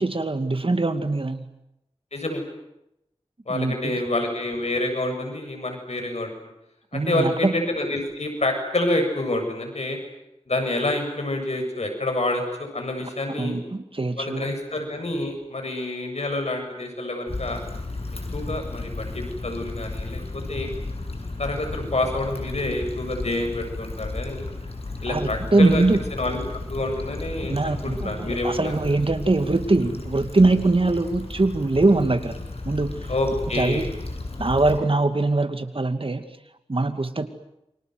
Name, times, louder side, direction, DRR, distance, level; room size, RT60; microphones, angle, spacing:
voice 1, 0.0-1.5 3.5-3.9 6.9-7.5 13.4-14.5 25.1-26.0 27.4-32.4 32.6-33.1 33.5-33.9 34.4-36.3 36.7-37.3, right 2 dB, 55° right, 8 dB, 2.4 m, -22 dB
voice 2, 2.1-2.4 3.5-6.5 6.9-10.0 10.5-13.6 14.2-17.6 18.3-20.7 21.4-24.5 25.0-25.8 26.1-26.4 26.7-28.7 33.1-33.9, left 2 dB, 85° left, 4 dB, 7.5 m, -27 dB
Stream / Traffic noise roadway noise / Trickle dribble, 17.3-34.8, left 2 dB, 70° left, 7.1 m, -34 dB
29.0 x 25.5 x 8.0 m, 0.86 s
wide cardioid pair, 60°, 11 cm